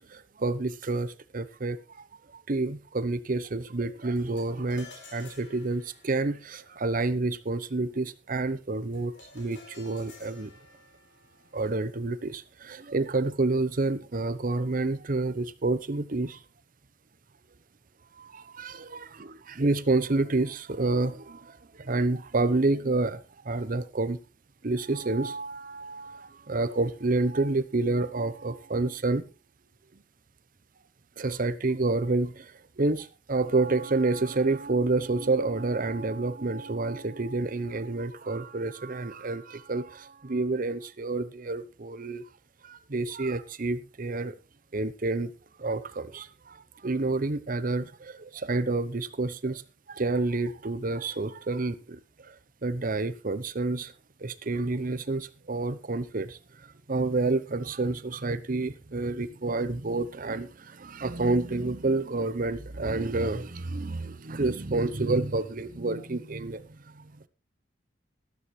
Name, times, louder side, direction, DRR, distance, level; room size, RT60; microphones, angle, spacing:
voice 1, 0.0-2.0 2.3-10.5 11.5-16.4 18.2-24.2 24.6-29.2 31.2-42.2 42.6-44.3 44.7-45.3 45.6-49.6 49.9-52.4 52.6-53.9 54.2-56.4 56.9-67.3, right 3 dB, 50° right, 0.8 m, -29 dB
sound 1, 4.2-13.6, left 3 dB, 80° left, 4.3 m, -54 dB
13.0 x 13.0 x 3.2 m
head